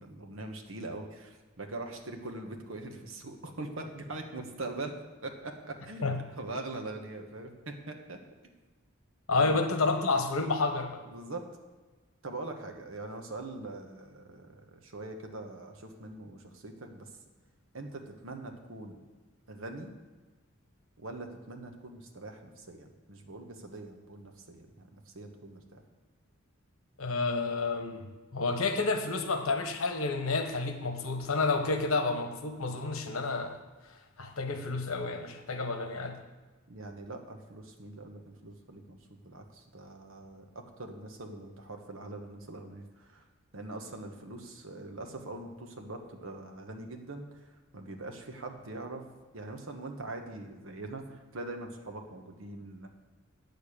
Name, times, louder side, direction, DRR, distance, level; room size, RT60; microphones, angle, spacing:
voice 1, 0.0-4.9 5.2-8.2 9.4-9.5 11.1-11.4 12.2-17.1 17.7-19.1 19.5-19.9 21.0-25.8 36.7-43.2 43.5-47.4 47.7-49.0 49.3-52.9, right 2 dB, 70° right, 4 dB, 1.3 m, -42 dB
voice 2, 9.3-11.0 27.0-28.0 28.3-33.6 34.2-36.2, left 3 dB, 85° left, 5 dB, 1.2 m, -30 dB
8.4 x 6.8 x 8.6 m, 1.3 s
head